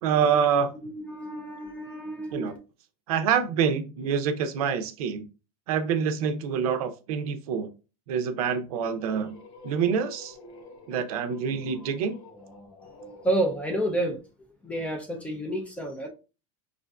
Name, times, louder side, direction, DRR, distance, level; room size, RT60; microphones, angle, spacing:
voice 1, 0.0-0.7 2.3-2.5 3.1-5.2 5.7-7.7 8.1-9.4 9.6-10.4 10.9-12.2, right 7 dB, 75° right, 0.7 m, -26 dB
voice 2, 0.8-2.6 13.2-14.2 14.6-16.1, right 1 dB, 5° left, 0.3 m, -29 dB
sound 1, 8.6-13.5, left 3 dB, 25° left, 0.9 m, -49 dB
5.0 x 2.5 x 2.2 m
supercardioid pair, 165°, 19 cm